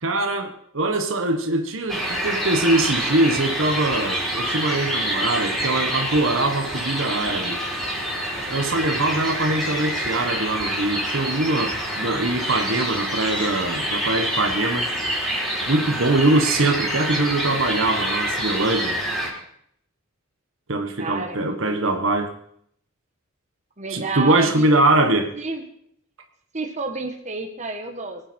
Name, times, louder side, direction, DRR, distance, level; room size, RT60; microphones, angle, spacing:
voice 1, 0.0-7.6 8.5-14.9 15.7-19.0 20.7-22.3 23.9-25.3, right 2 dB, 65° right, 5 dB, 1.4 m, -22 dB
sound 1, 1.9-19.3, equal, ahead, 4.6 m, -27 dB
voice 2, 21.0-21.9 23.8-24.7 25.4-25.6 26.5-28.2, right 3 dB, 35° right, 4 dB, 1.6 m, -30 dB
23.5 x 9.1 x 4.5 m, 0.68 s
head